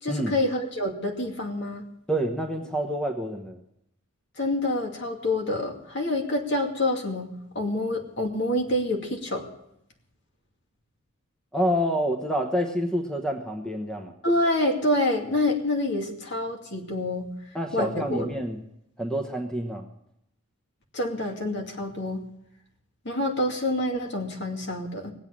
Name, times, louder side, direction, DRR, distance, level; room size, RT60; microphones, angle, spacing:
voice 1, 0.0-1.8 4.4-9.5 14.2-17.3 17.7-18.3 20.9-22.3 23.0-25.1, left 1 dB, 55° left, 2 dB, 2.5 m, -27 dB
voice 2, 2.1-3.6 11.5-14.1 17.5-18.6 19.0-19.9, equal, 5° left, 3 dB, 1.0 m, -27 dB
19.0 x 8.1 x 8.7 m, 0.79 s
head